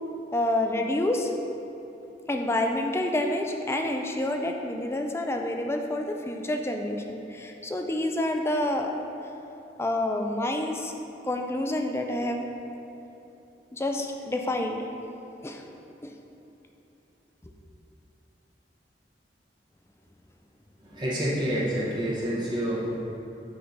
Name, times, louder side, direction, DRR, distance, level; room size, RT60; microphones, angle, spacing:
voice 1, 0.3-1.3 2.3-8.9 9.8-10.9 11.2-12.4 13.7-14.9 15.4-15.6 16.0-16.1, left 1 dB, 15° left, 3 dB, 0.4 m, -28 dB
voice 2, 20.8-23.0, equal, 25° right, -7 dB, 0.9 m, -28 dB
8.7 x 3.6 x 4.0 m, 3.0 s
head